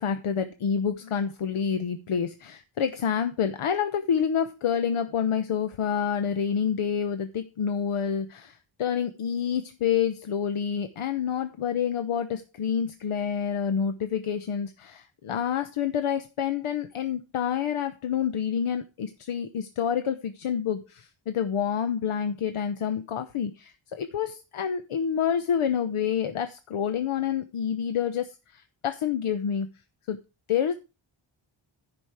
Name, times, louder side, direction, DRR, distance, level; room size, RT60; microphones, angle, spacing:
voice 1, 0.0-29.7 30.1-30.2 30.5-30.7, left 8 dB, 80° left, 9 dB, 1.0 m, -28 dB
15.0 x 5.3 x 4.8 m, 0.29 s
wide cardioid pair, 165°, 50 cm